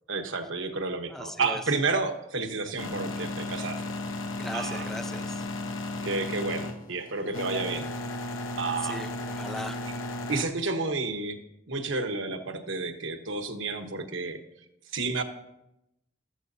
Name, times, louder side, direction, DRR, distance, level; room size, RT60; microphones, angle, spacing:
voice 1, 0.1-3.8 4.5-4.9 6.0-7.9 8.6-9.0 10.3-11.4 11.7-14.4 14.9-15.2, right 3 dB, 75° right, 5 dB, 1.2 m, -30 dB
voice 2, 1.1-1.6 4.4-5.4 8.8-9.8, left 1 dB, ahead, 7 dB, 0.6 m, -38 dB
sound 1, 2.8-10.4, left 2 dB, 90° left, 1.1 m, -35 dB
14.0 x 13.5 x 2.7 m, 0.86 s
head